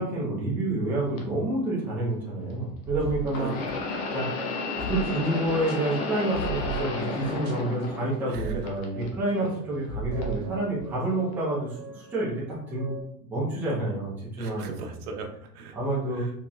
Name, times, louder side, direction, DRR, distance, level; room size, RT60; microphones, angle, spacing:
voice 1, 0.0-3.5 4.1-4.3 4.8-12.9 13.2-14.8 15.7-16.2, right 2 dB, 5° right, -7 dB, 0.6 m, -28 dB
sound 1, 1.2-1.3 3.3-8.3 8.7-9.5 10.2-10.4 11.3-11.4, left 3 dB, 45° left, 0.7 m, -32 dB
sound 2, 2.9-13.0, right 4 dB, 35° right, 1.0 m, -38 dB
voice 2, 3.4-4.0 8.2-8.7 9.3-9.6 14.4-15.8 16.1-16.3, right 4 dB, 70° right, 4 dB, 0.9 m, -39 dB
4.2 x 2.9 x 2.3 m, 0.69 s
supercardioid pair, 170°, 46 cm